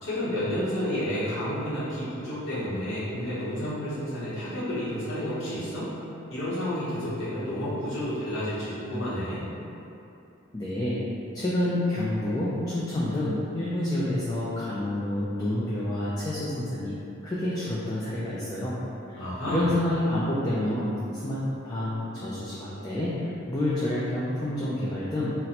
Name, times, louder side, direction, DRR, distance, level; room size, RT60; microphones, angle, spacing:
voice 1, 0.0-5.9 6.3-9.5 19.2-19.7, equal, 80° left, -11 dB, 0.9 m, -30 dB
voice 2, 10.5-11.0 11.3-16.9 17.2-18.8 19.1-25.3, left 1 dB, 20° left, -8 dB, 0.3 m, -28 dB
2.8 x 2.1 x 4.0 m, 2.8 s
head